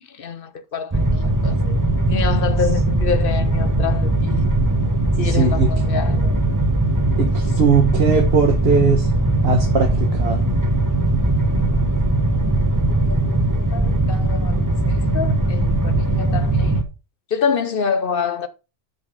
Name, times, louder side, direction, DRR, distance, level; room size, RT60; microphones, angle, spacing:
voice 1, 0.2-1.8 2.1-4.4 5.2-6.4 13.0-13.4 13.7-16.7 17.3-18.5, left 6 dB, 50° left, 0.9 m, -26 dB
sound 1, 0.9-16.8, right 2 dB, 15° right, 1.0 m, -19 dB
voice 2, 5.2-5.7 7.2-9.1 9.4-10.5, right 4 dB, 55° right, 1.3 m, -19 dB
7.0 x 6.4 x 4.8 m
omnidirectional pair, 1.3 m